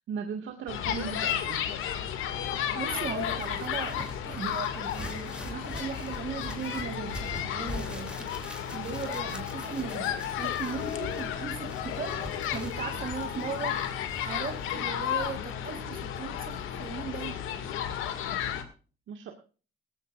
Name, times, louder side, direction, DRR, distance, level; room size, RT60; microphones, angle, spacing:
voice 1, 0.1-1.7 9.2-9.3 19.1-19.3, right 6 dB, 75° right, 2.0 m, -37 dB
sound 1, 0.7-18.6, left 9 dB, 90° left, 2.2 m, -33 dB
voice 2, 2.7-8.4 8.7-13.9 14.2-17.4, right 6 dB, 45° right, 2.2 m, -38 dB
sound 2, 3.1-14.8, equal, 5° right, 3.0 m, -44 dB
19.0 x 14.5 x 2.5 m
cardioid pair, 90°, 20 cm